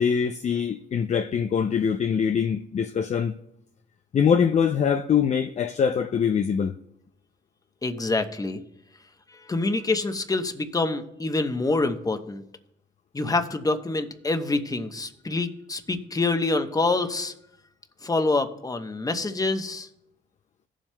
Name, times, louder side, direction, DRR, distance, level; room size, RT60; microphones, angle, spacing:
voice 1, 0.0-3.4 4.1-6.7, left 7 dB, 35° left, 0.4 m, -23 dB
voice 2, 7.8-8.6 9.5-12.4 13.1-17.3 18.0-19.9, left 3 dB, 20° left, 0.9 m, -26 dB
17.0 x 7.4 x 2.2 m
cardioid pair, 90°, 20 cm